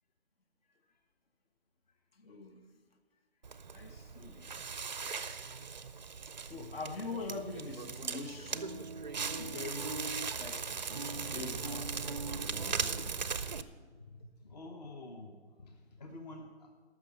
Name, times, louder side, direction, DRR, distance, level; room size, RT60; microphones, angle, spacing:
voice 1, 0.6-1.0 10.6-13.4 13.9-16.7, left 2 dB, 35° left, 1.0 m, -51 dB
voice 2, 2.1-2.7 3.7-4.5 6.5-9.0 9.4-10.0 10.4-13.3 14.2-14.3, left 3 dB, 55° left, 1.3 m, -44 dB
Crackle, 3.4-13.6, right 5 dB, 40° right, 0.5 m, -38 dB
14.5 x 6.1 x 6.6 m
hypercardioid pair, 170°, 34 cm